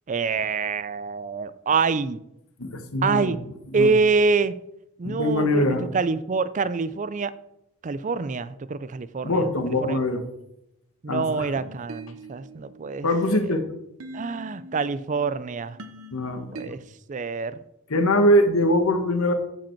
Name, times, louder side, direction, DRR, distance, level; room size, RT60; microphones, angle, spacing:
voice 1, 0.1-2.2 3.0-3.4 3.7-4.6 5.0-5.6 5.9-7.3 7.8-10.0 11.0-13.4 14.1-15.8 16.5-16.8 17.1-17.5, right 4 dB, 35° right, 16 dB, 0.4 m, -26 dB
voice 2, 2.6-3.4 3.7-3.9 5.0-5.9 9.2-10.2 11.1-11.5 13.0-13.7 16.1-16.7 17.9-19.3, left 1 dB, 85° left, 7 dB, 1.4 m, -22 dB
sound 1, 11.6-16.7, right 1 dB, 85° right, 1.0 m, -43 dB
14.5 x 5.1 x 4.6 m, 0.82 s
head